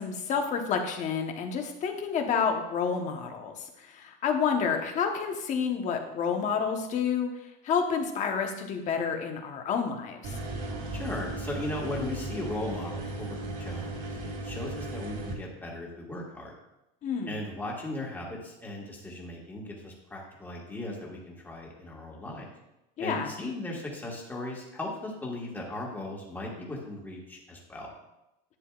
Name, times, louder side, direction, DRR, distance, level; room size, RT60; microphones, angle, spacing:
voice 1, 0.0-7.3 7.6-10.4 17.0-17.4 23.0-23.3, left 6 dB, 35° left, 4 dB, 1.1 m, -29 dB
sound 1, 10.2-15.3, right 2 dB, 45° right, 2.2 m, -36 dB
voice 2, 10.9-16.6 17.3-22.5 23.0-27.9, left 1 dB, 10° left, -2 dB, 1.7 m, -37 dB
11.0 x 9.3 x 2.5 m, 0.91 s
cardioid pair, 160°, 21 cm